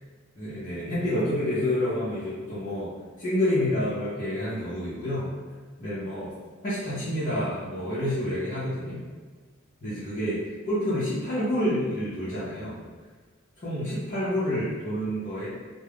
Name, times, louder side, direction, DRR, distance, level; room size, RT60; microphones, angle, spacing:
voice 1, 0.4-2.9 3.2-5.3 5.8-6.3 6.6-9.0 9.8-10.4 10.7-12.8 13.6-15.5, left 1 dB, 40° left, -12 dB, 0.6 m, -28 dB
2.3 x 2.0 x 3.3 m, 1.4 s
head